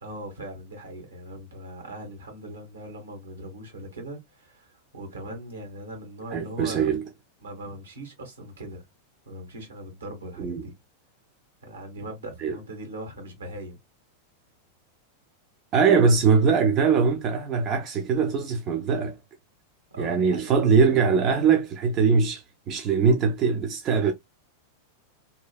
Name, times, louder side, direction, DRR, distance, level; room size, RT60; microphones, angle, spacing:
voice 1, 0.0-6.9 7.4-8.9 9.3-10.7 11.6-13.8 19.9-20.5, right 1 dB, 75° right, 1.1 m, -40 dB
voice 2, 6.3-7.0 10.4-10.6 12.4-12.6 15.7-19.2 20.0-24.1, right 5 dB, 35° right, 0.4 m, -22 dB
2.7 x 2.2 x 2.3 m
figure-of-eight pair, 90°, 0 cm